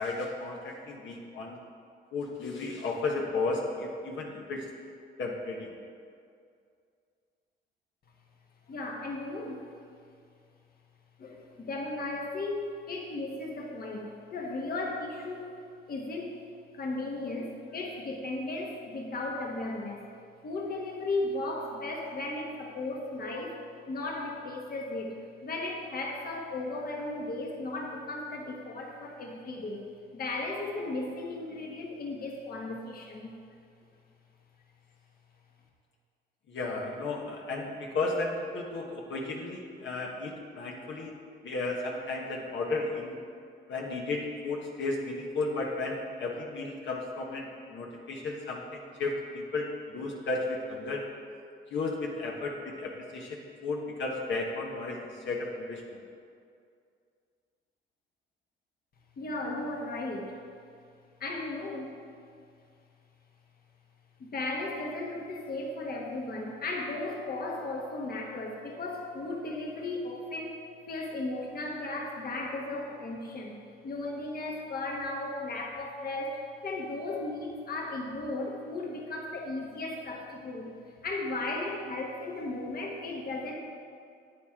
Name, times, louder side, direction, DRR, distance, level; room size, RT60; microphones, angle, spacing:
voice 1, 0.0-1.6 2.1-4.7 5.2-5.7 36.5-41.1 41.4-43.2 43.7-51.1 51.7-56.0, left 3 dB, 70° left, -1 dB, 1.3 m, -34 dB
voice 2, 8.7-9.7 11.2-15.5 15.9-16.3 16.7-20.1 20.4-23.6 23.9-29.9 30.1-33.3 59.2-60.4 61.2-61.9 64.2-70.6 70.9-73.5 73.8-80.7 81.0-83.6, left 2 dB, 50° left, 0 dB, 1.3 m, -35 dB
9.3 x 9.0 x 3.7 m, 2.3 s
cardioid pair, 90°, 20 cm